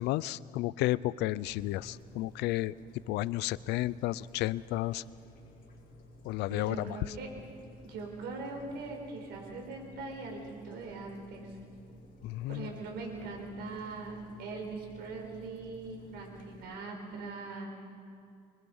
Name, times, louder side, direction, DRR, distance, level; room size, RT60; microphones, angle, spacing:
voice 1, 0.0-2.7 3.1-5.0 6.2-7.0 12.2-12.7, left 16 dB, 90° left, 20 dB, 0.5 m, -32 dB
sound 1, 1.4-16.6, left 1 dB, 55° left, 5.6 m, -54 dB
voice 2, 6.5-7.3 7.8-11.6 12.5-17.7, right 3 dB, 80° right, 1 dB, 4.8 m, -41 dB
25.5 x 23.0 x 5.6 m, 2.5 s
cardioid pair, 110°, 17 cm